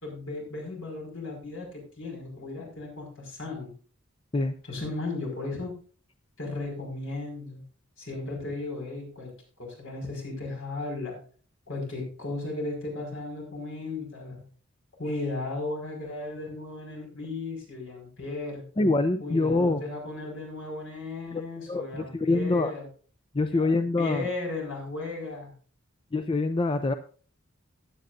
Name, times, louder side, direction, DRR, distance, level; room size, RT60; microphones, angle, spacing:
voice 1, 0.0-3.7 4.7-5.7 6.4-7.6 8.0-9.3 9.6-11.2 11.7-14.4 15.0-18.6 19.2-22.9 23.5-25.5, left 2 dB, 65° left, 1 dB, 5.4 m, -35 dB
voice 2, 18.8-19.8 21.3-22.7 23.3-24.3 26.1-26.9, left 2 dB, 25° left, 8 dB, 0.5 m, -25 dB
16.0 x 9.7 x 2.6 m, 0.41 s
head